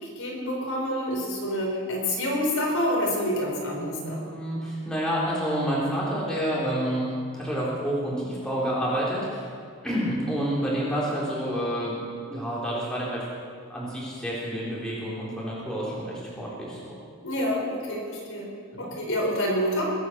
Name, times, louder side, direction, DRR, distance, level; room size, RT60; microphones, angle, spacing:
voice 1, 0.0-4.3 17.2-18.5 18.8-19.9, equal, 65° left, -2 dB, 4.6 m, -27 dB
voice 2, 3.7-9.5 9.8-12.0 12.3-13.2 13.7-16.9 18.7-18.8, equal, 5° left, -7 dB, 3.6 m, -29 dB
21.5 x 9.6 x 6.2 m, 2.1 s
head